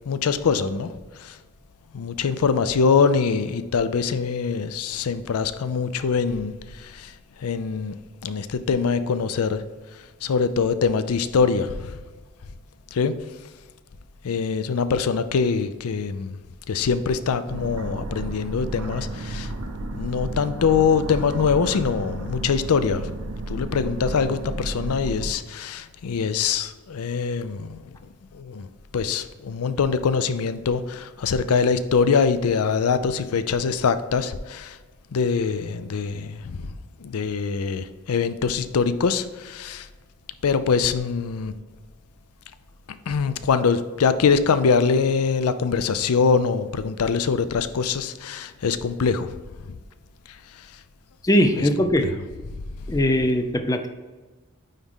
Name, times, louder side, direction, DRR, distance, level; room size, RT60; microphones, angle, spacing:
voice 1, 0.1-0.9 1.2-1.4 1.9-7.1 7.4-9.7 10.2-12.0 12.9-13.2 14.2-16.4 16.7-19.5 19.9-23.1 23.5-27.9 28.3-28.7 28.9-34.8 35.1-36.8 37.0-39.9 40.4-41.6 43.1-49.3 49.7-49.8 50.6-50.7 51.6-51.7 52.0-52.1 52.5-52.6, left 5 dB, 85° left, 0.5 m, -23 dB
sound 1, 17.5-25.3, right 2 dB, 80° right, 0.7 m, -32 dB
voice 2, 51.2-52.1 52.9-53.9, equal, 15° left, 0.4 m, -20 dB
9.3 x 3.6 x 3.6 m
head